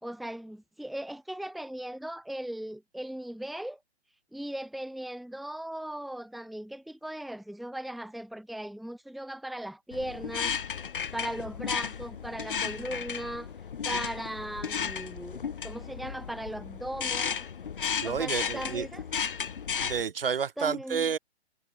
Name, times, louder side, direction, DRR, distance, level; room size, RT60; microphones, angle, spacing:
voice 1, 0.0-3.8 4.3-10.8 11.1-13.5 13.8-17.4 18.0-19.0 20.6-21.1, right 1 dB, ahead, 2.5 m, -38 dB
sound 1, 9.9-20.0, left 7 dB, 50° left, 3.7 m, -34 dB
voice 2, 18.0-18.9 19.8-21.2, right 6 dB, 55° right, 4.8 m, -30 dB
hypercardioid pair, 180°, 33 cm